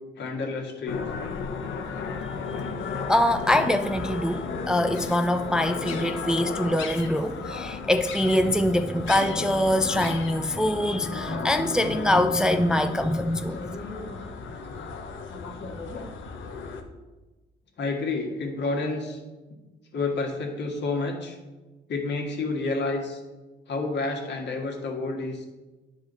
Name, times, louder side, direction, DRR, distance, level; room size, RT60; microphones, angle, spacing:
voice 1, 0.2-1.1 13.2-14.2 15.3-16.1 17.8-19.2 19.9-21.4 21.9-23.2 23.7-25.5, left 3 dB, 60° left, 1 dB, 1.7 m, -30 dB
sound 1, 0.9-16.8, left 4 dB, 75° left, 1.0 m, -34 dB
voice 2, 3.1-13.6, left 1 dB, 5° right, 8 dB, 0.3 m, -24 dB
10.0 x 4.8 x 4.0 m, 1.2 s
cardioid pair, 90°, 20 cm